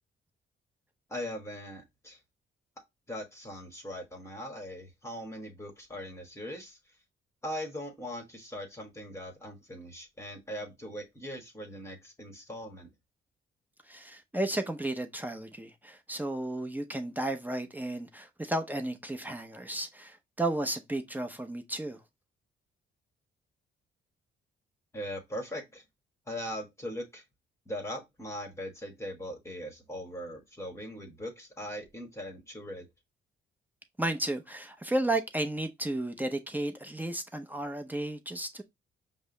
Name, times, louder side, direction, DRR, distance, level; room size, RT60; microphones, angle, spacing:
voice 1, 1.1-2.2 3.1-6.8 7.4-12.9 24.9-25.8 26.3-27.2 27.7-32.8, equal, 15° left, 1.4 m, -40 dB
voice 2, 13.9-22.0 34.0-38.6, right 1 dB, 10° right, 0.7 m, -33 dB
5.3 x 2.0 x 3.8 m
cardioid pair, 90°, 20 cm